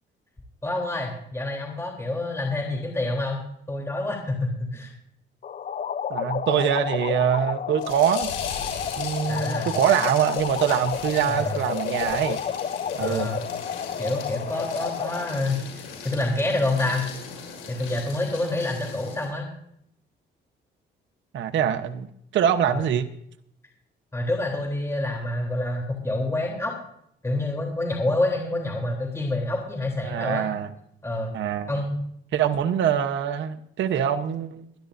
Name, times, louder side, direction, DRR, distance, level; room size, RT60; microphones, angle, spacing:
voice 1, 0.6-4.9 9.3-9.8 11.3-11.6 13.0-13.4 14.0-17.0 17.7-19.5 22.7-22.9 24.1-26.7 27.2-30.5 31.0-31.4 31.7-31.9, left 2 dB, 15° left, -1 dB, 3.4 m, -27 dB
sound 1, 5.4-15.4, left 8 dB, 45° left, 0.7 m, -31 dB
voice 2, 6.1-8.3 9.0-12.4 12.9-13.3 21.3-22.1 22.3-23.1 30.0-30.7 31.3-31.7 32.3-34.6, right 9 dB, 70° right, 7 dB, 1.0 m, -24 dB
sound 2, 7.8-19.3, left 6 dB, 90° left, 6.2 m, -38 dB
23.5 x 11.5 x 2.7 m, 0.71 s
cardioid pair, 90°, 20 cm